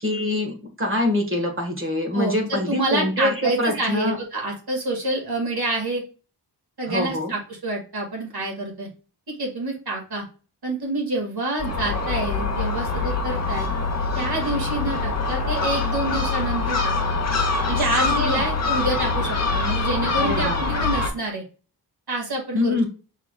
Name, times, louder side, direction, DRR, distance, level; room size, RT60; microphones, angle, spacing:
voice 1, 0.0-4.2 6.9-7.3 17.7-18.5 20.2-20.6 22.5-22.9, left 1 dB, 30° right, 2 dB, 1.6 m, -25 dB
voice 2, 2.1-6.0 6.8-8.9 9.3-10.2 10.6-13.7 14.2-17.1 17.7-21.4 22.1-22.8, right 2 dB, 65° right, 0 dB, 2.2 m, -27 dB
Gull seagull, 11.6-21.1, left 3 dB, 40° left, 1.0 m, -24 dB
5.7 x 3.7 x 2.4 m, 0.35 s
wide cardioid pair, 115°, 41 cm